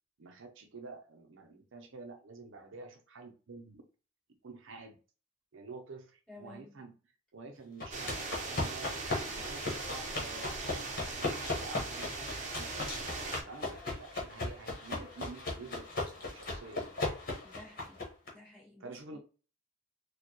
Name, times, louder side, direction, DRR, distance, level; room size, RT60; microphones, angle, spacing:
voice 1, 0.2-3.8 4.4-5.0 5.5-6.9 7.3-13.1 13.4-15.9 16.1-16.9 18.8-19.2, right 3 dB, 70° right, 0.6 m, -49 dB
voice 2, 6.3-6.7 17.4-18.1 18.3-19.2, left 1 dB, 5° left, 2.0 m, -53 dB
sound 1, 7.8-18.3, left 2 dB, 45° left, 1.3 m, -37 dB
sound 2, 7.9-13.4, right 3 dB, 35° right, 0.8 m, -40 dB
4.3 x 2.3 x 3.0 m
head